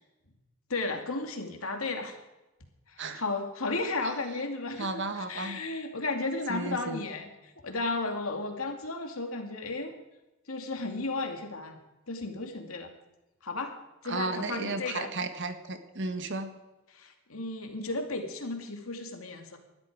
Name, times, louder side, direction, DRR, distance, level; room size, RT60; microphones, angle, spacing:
voice 1, 0.7-2.2 2.9-9.9 10.5-12.9 13.4-13.7 14.0-15.1 16.9-19.6, left 3 dB, 80° left, 4 dB, 2.5 m, -34 dB
voice 2, 4.8-5.6 6.5-7.0 14.0-16.5, right 3 dB, 60° right, 8 dB, 1.7 m, -34 dB
20.0 x 12.5 x 5.0 m, 1.0 s
head